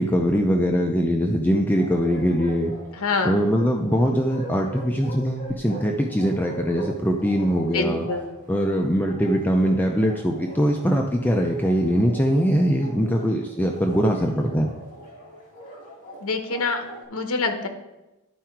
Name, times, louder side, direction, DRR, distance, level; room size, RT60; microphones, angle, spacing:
voice 1, 0.0-2.7 3.2-8.1 8.5-14.7, equal, 10° left, 2 dB, 0.5 m, -22 dB
Bark, 1.7-17.0, right 1 dB, 35° left, 2.1 m, -41 dB
voice 2, 3.0-3.4 7.7-8.4 16.2-17.7, left 3 dB, 70° left, 7 dB, 1.0 m, -26 dB
11.0 x 4.7 x 4.5 m, 1.0 s
head